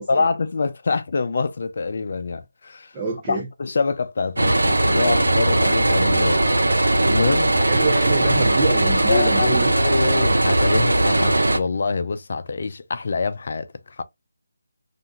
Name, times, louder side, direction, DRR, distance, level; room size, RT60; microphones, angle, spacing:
voice 1, 0.1-2.9 3.3-6.5 7.0-7.5 9.1-14.0, left 4 dB, 55° left, 0.5 m, -25 dB
voice 2, 2.9-3.5 7.6-9.7, right 3 dB, 15° right, 0.5 m, -26 dB
sound 1, 4.4-11.6, right 1 dB, 80° right, 0.6 m, -19 dB
2.5 x 2.3 x 2.9 m
figure-of-eight pair, 160°, 0 cm